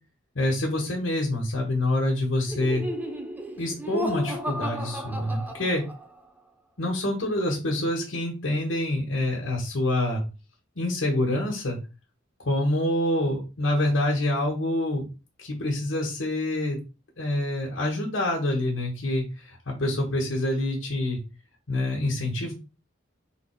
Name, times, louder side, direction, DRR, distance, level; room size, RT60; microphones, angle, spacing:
voice 1, 0.3-2.8 3.6-5.8 6.8-10.2 10.7-11.8 12.4-15.1 15.4-16.8 17.2-21.2 21.7-22.5, left 1 dB, 85° left, -1 dB, 1.3 m, -26 dB
Laughter, 2.5-6.2, left 1 dB, 10° right, 0.5 m, -33 dB
3.9 x 2.9 x 4.4 m, 0.30 s
head